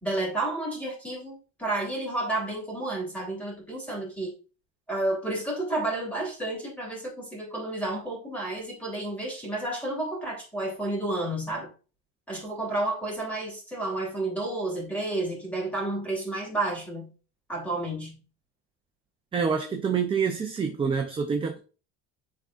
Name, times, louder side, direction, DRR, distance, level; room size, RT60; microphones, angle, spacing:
voice 1, 0.0-4.3 4.9-11.7 12.3-17.1 17.5-18.2, right 2 dB, 5° left, 3.0 m, -31 dB
voice 2, 19.3-21.6, right 6 dB, 15° right, 0.5 m, -27 dB
10.5 x 3.8 x 2.4 m
cardioid pair, 150°, 32 cm